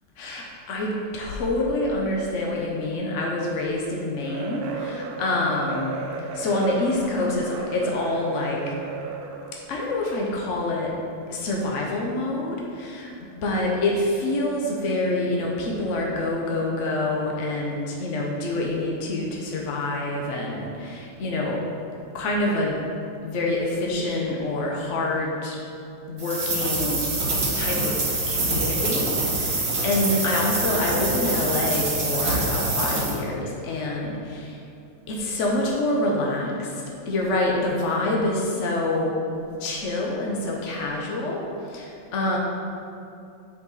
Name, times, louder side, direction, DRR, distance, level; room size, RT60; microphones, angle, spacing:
voice 1, 0.2-8.7 9.7-10.9 11.3-21.6 22.1-22.8 23.2-25.6 26.1-34.6 35.1-39.2 39.6-42.4, left 2 dB, 65° left, -2 dB, 0.7 m, -26 dB
sound 1, 4.2-9.7, right 5 dB, 90° right, 0.8 m, -34 dB
sound 2, 26.2-33.1, right 2 dB, 50° right, 1.8 m, -25 dB
7.7 x 5.3 x 4.0 m, 2.7 s
omnidirectional pair, 2.4 m